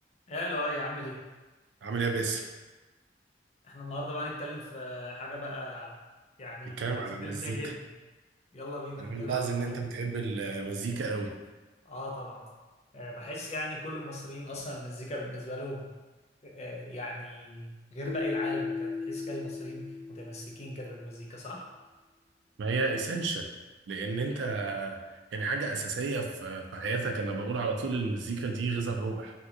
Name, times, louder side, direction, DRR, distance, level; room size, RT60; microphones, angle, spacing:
voice 1, 0.3-1.2 3.6-6.0 6.4-6.9 7.2-7.9 8.5-9.5 11.9-12.5 12.9-15.9 16.4-21.7, left 1 dB, 35° left, -2 dB, 0.5 m, -38 dB
voice 2, 1.8-2.4 6.8-7.6 9.0-11.4 22.6-23.5 23.9-25.0 25.3-29.3, right 4 dB, 80° right, 3 dB, 0.4 m, -32 dB
Keyboard (musical), 18.1-20.9, left 4 dB, 85° left, 0.6 m, -36 dB
2.8 x 2.2 x 3.6 m, 1.2 s
head